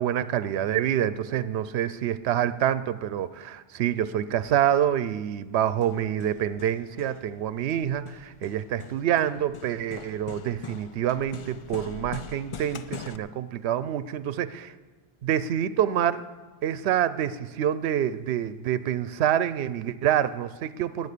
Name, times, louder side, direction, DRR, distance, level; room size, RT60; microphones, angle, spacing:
voice 1, 0.0-14.7 15.2-16.2 16.6-21.1, right 10 dB, 80° right, 15 dB, 0.8 m, -27 dB
Hammer, 5.6-13.2, left 7 dB, 50° left, 0.4 m, -43 dB
19.0 x 7.8 x 6.7 m, 1.4 s
omnidirectional pair, 1.1 m